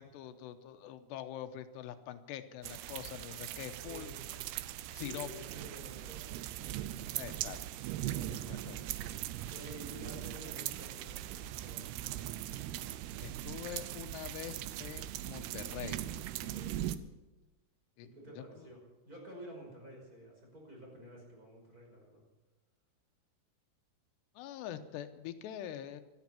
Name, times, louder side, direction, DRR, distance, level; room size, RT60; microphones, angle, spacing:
voice 1, 0.0-4.1 4.9-5.3 7.1-7.6 8.1-8.2 8.5-8.8 13.2-16.0 18.0-18.1 18.4-18.7 24.4-26.0, left 11 dB, 90° left, 9 dB, 3.0 m, -44 dB
sound 1, 2.6-17.0, right 13 dB, 80° right, 2.7 m, -40 dB
voice 2, 3.9-4.5 5.0-6.7 8.5-12.2 16.4-16.8 18.0-22.2, right 1 dB, 20° right, -1 dB, 5.6 m, -51 dB
17.0 x 13.5 x 5.8 m, 1.1 s
omnidirectional pair, 4.9 m